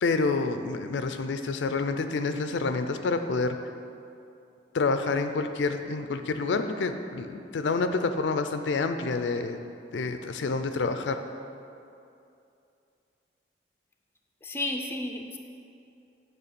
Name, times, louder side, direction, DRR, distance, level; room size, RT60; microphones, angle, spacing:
voice 1, 0.0-3.6 4.7-9.6 9.9-11.2, left 3 dB, 85° left, 8 dB, 0.4 m, -28 dB
voice 2, 14.4-15.4, left 2 dB, 15° left, 3 dB, 0.5 m, -32 dB
8.3 x 3.5 x 6.7 m, 2.6 s
head